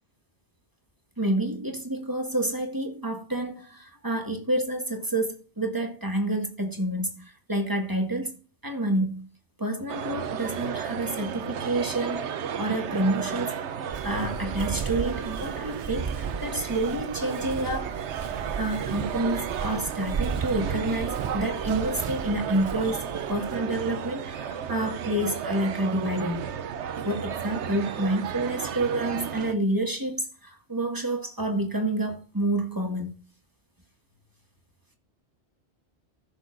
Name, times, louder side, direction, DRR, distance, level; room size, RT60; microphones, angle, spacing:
voice 1, 1.2-9.3 9.6-12.3 12.6-13.8 14.0-26.5 27.0-33.1, right 1 dB, 20° right, 1.8 m, -29 dB
sound 1, 9.9-29.5, right 8 dB, 90° right, 1.0 m, -33 dB
Walk footsteps, 13.9-23.6, right 6 dB, 55° right, 0.3 m, -35 dB
15.0 x 6.8 x 2.6 m
omnidirectional pair, 1.1 m